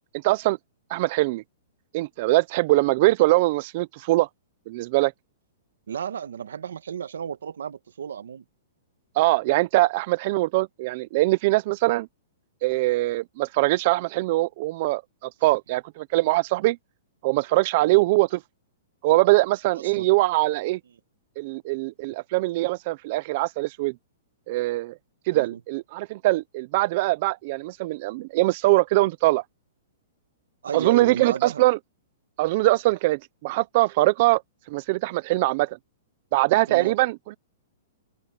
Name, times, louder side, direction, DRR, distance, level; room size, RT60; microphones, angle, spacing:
voice 1, 0.2-0.6 0.9-1.4 1.9-4.3 4.7-5.1 9.2-12.1 12.6-16.8 17.2-18.4 19.0-20.8 21.4-23.9 24.5-24.9 25.3-29.4 30.7-31.8 32.4-34.4 34.7-35.8 36.3-37.4, right 20 dB, 45° right, 0.6 m, -22 dB
voice 2, 5.9-8.4 17.8-18.0 19.7-20.1 25.3-25.6 30.6-31.6 36.7-36.9, right 8 dB, 85° right, 1.7 m, -33 dB
hypercardioid pair, 155°, 0 cm